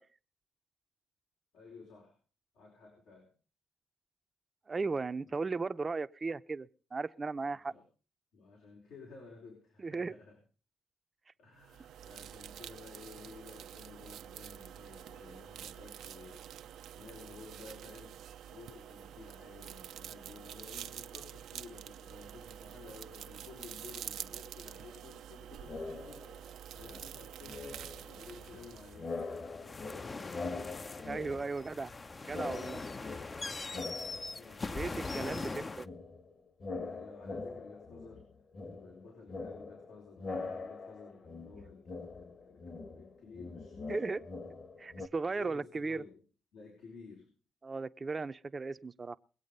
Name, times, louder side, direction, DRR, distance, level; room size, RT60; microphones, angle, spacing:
voice 1, 1.5-2.2 2.5-3.3 5.2-5.4 7.4-7.8 8.3-10.4 11.4-16.5 16.9-18.2 18.5-30.6 34.3-35.7 36.7-38.3 38.6-44.2 45.0-46.2 46.5-47.3, left 4 dB, 90° left, 4.9 m, -54 dB
voice 2, 4.7-7.7 9.8-10.1 31.0-31.9 32.2-32.8 34.7-35.9 43.9-44.2 44.8-46.0 47.6-49.2, right 4 dB, 30° right, 0.6 m, -36 dB
sound 1, 11.6-29.4, right 10 dB, 80° right, 0.6 m, -47 dB
sound 2, 25.6-26.5 26.8-28.7 28.9-32.0 32.3-34.8 35.1-45.1, left 3 dB, 45° left, 1.6 m, -43 dB
sound 3, 28.1-35.9, left 3 dB, 30° left, 0.6 m, -42 dB
22.0 x 8.4 x 5.4 m
cardioid pair, 90°, 0 cm